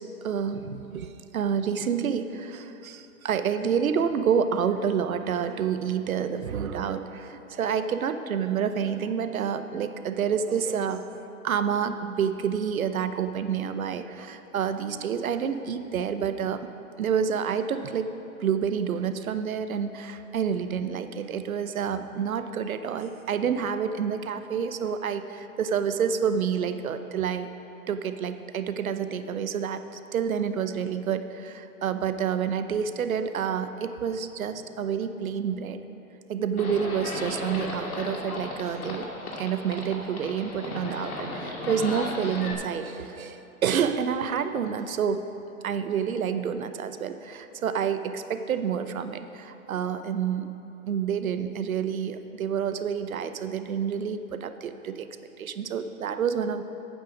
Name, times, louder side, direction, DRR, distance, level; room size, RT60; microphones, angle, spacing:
voice 1, 0.2-16.7 17.0-18.1 18.4-27.5 27.9-35.8 36.3-39.1 39.4-45.3 45.6-50.5 50.9-55.1 55.4-56.6, right 7 dB, 70° right, 10 dB, 0.8 m, -28 dB
Livestock farm animals working animals, 36.6-42.5, left 2 dB, 80° left, 2.3 m, -35 dB
11.5 x 8.9 x 5.0 m, 3.0 s
hypercardioid pair, 175°, 43 cm